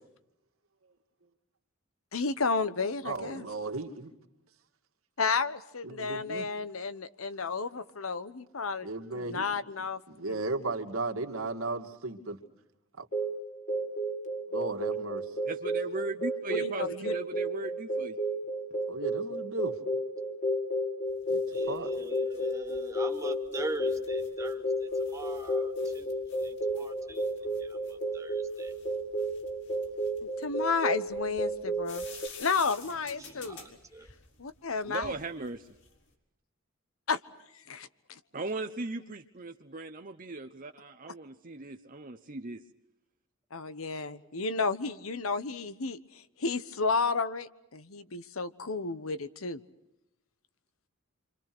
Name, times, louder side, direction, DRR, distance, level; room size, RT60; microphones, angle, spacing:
voice 1, 2.1-3.5 5.2-10.0 10.3-10.4 16.5-17.1 30.4-32.0 32.4-33.6 34.4-35.1 37.1-37.2 37.5-38.2 43.5-49.6, left 4 dB, 80° left, 13 dB, 1.2 m, -32 dB
voice 2, 3.0-4.1 5.8-6.5 8.8-9.5 10.1-12.4 13.0-13.1 14.5-15.2 18.9-19.8 21.3-21.9, right 2 dB, 80° right, 4 dB, 2.5 m, -35 dB
sound 1, 13.1-32.3, equal, 35° left, 2.2 m, -33 dB
voice 3, 15.4-18.2 34.9-35.8 38.3-42.6, right 3 dB, 40° right, 6 dB, 1.0 m, -38 dB
sound 2, 21.1-36.1, left 4 dB, 55° left, 4.6 m, -52 dB
voice 4, 21.5-27.3 27.6-28.7 29.8-30.0 33.2-34.1, right 2 dB, 15° right, 5 dB, 2.1 m, -42 dB
28.5 x 26.0 x 6.2 m, 0.87 s
head